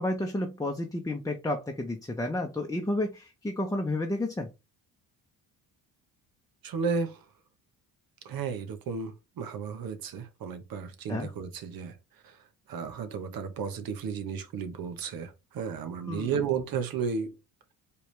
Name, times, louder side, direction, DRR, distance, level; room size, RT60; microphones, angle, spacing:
voice 1, 0.0-4.5 11.1-11.3 16.0-16.4, left 1 dB, 10° left, 0.8 m, -31 dB
voice 2, 6.6-7.2 8.2-11.9 12.2-12.4 12.7-17.3, right 6 dB, 60° right, 1.1 m, -33 dB
4.7 x 3.4 x 3.3 m
cardioid pair, 85°, 39 cm